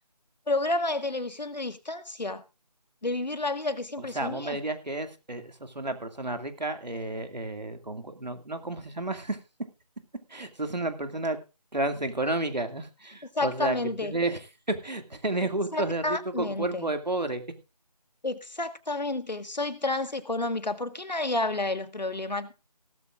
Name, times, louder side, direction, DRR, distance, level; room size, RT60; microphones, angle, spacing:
voice 1, 0.5-2.4 3.0-4.6 13.3-14.2 15.7-16.9 18.2-22.6, left 2 dB, 85° left, 1.7 m, -30 dB
voice 2, 4.0-9.4 10.3-11.4 11.7-13.8 14.0-14.4 14.7-17.4, right 2 dB, 85° right, 2.4 m, -31 dB
17.0 x 14.0 x 2.5 m
figure-of-eight pair, 165°, 21 cm